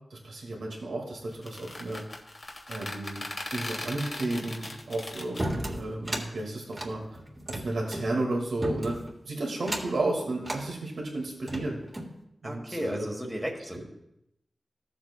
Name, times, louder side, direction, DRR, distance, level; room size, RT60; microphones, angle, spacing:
voice 1, 0.1-2.0 2.7-3.2 3.5-7.0 7.5-9.0 9.2-11.8 12.4-13.0, right 2 dB, 85° right, -1 dB, 2.1 m, -32 dB
sound 1, 1.3-5.5, left 2 dB, 45° left, 1.4 m, -38 dB
sound 2, 5.4-6.3 6.7-8.1 8.6-9.1 9.6-10.0 10.4-10.6 11.2-12.1, right 1 dB, 30° right, 1.8 m, -34 dB
voice 2, 12.4-13.8, equal, 10° right, 0 dB, 1.5 m, -34 dB
14.5 x 7.6 x 2.4 m, 0.83 s
wide cardioid pair, 65°, 0 cm